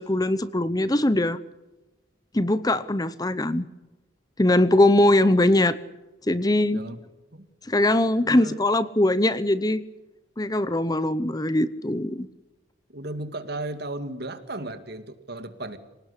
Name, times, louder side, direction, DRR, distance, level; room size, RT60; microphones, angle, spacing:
voice 1, 0.0-1.4 2.3-3.7 4.4-5.8 6.3-6.8 7.7-9.8 10.4-12.3, left 1 dB, 20° left, 14 dB, 0.8 m, -21 dB
voice 2, 6.7-7.0 7.3-7.5 8.2-8.6 12.9-15.8, right 2 dB, 50° right, 9 dB, 2.3 m, -35 dB
27.0 x 19.0 x 8.3 m, 1.1 s
head